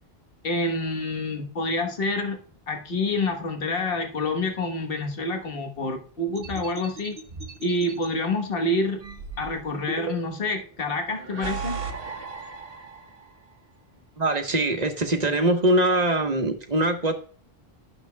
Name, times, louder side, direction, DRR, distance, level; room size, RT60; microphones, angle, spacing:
voice 1, 0.4-2.4 2.7-7.2 7.6-9.0 9.4-11.8, left 2 dB, 65° left, 4 dB, 1.5 m, -27 dB
sound 1, 6.4-8.1 9.0-10.5 11.1-13.3, right 4 dB, 65° right, 1.1 m, -36 dB
voice 2, 14.2-17.1, right 1 dB, 40° right, 6 dB, 1.2 m, -22 dB
11.5 x 6.8 x 2.2 m, 0.43 s
omnidirectional pair, 1.0 m